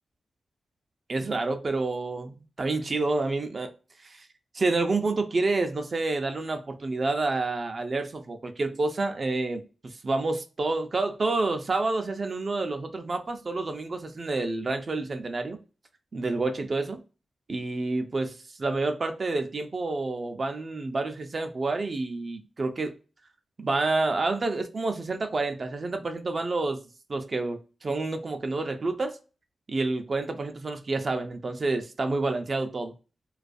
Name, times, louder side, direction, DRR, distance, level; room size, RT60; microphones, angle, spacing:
voice 1, 1.1-3.7 4.0-4.3 4.5-15.6 16.1-17.0 17.5-22.9 23.6-26.8 27.1-29.2 29.7-32.9, right 3 dB, 40° right, 0.4 m, -29 dB
2.3 x 2.3 x 2.5 m
wide cardioid pair, 100°, 0 cm